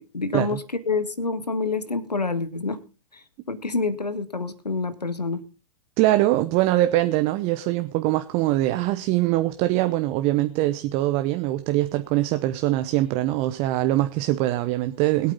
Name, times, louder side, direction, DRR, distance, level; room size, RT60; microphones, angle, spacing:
voice 1, 0.0-2.8 3.1-5.4, left 3 dB, 90° left, 1.7 m, -27 dB
voice 2, 6.0-15.3, right 16 dB, 30° right, 0.8 m, -23 dB
21.5 x 8.7 x 3.8 m
figure-of-eight pair, 115°, 20 cm